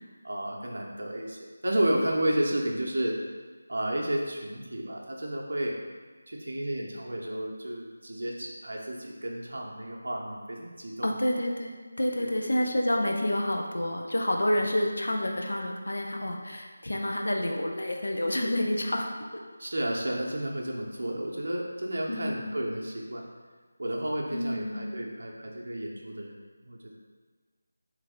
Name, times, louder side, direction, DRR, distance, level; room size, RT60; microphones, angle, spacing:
voice 1, 0.2-3.2 3.7-5.8 6.3-11.1 12.2-12.3 19.6-23.3 23.8-27.0, right 1 dB, 65° right, -1 dB, 0.6 m, -32 dB
voice 2, 11.0-19.1 19.3-19.4 22.1-22.6 24.3-24.9, left 1 dB, 70° left, 1 dB, 0.5 m, -29 dB
3.3 x 3.2 x 3.6 m, 1.5 s
figure-of-eight pair, 165°, 0 cm